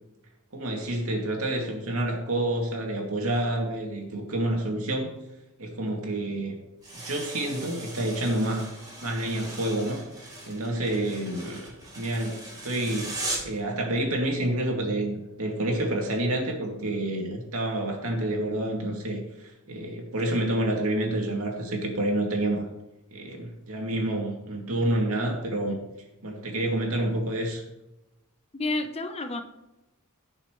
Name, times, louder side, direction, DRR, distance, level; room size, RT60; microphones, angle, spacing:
voice 1, 0.5-5.1 5.6-6.6 6.9-8.6 9.0-10.0 10.5-11.7 12.0-12.4 12.6-22.7 23.1-25.8 26.2-27.6, right 1 dB, 70° right, 0 dB, 2.5 m, -28 dB
sound 1, 6.8-13.6, right 2 dB, 20° right, 3.8 m, -39 dB
voice 2, 28.5-29.4, left 2 dB, 30° left, 8 dB, 0.8 m, -30 dB
16.5 x 6.4 x 3.2 m, 0.98 s
head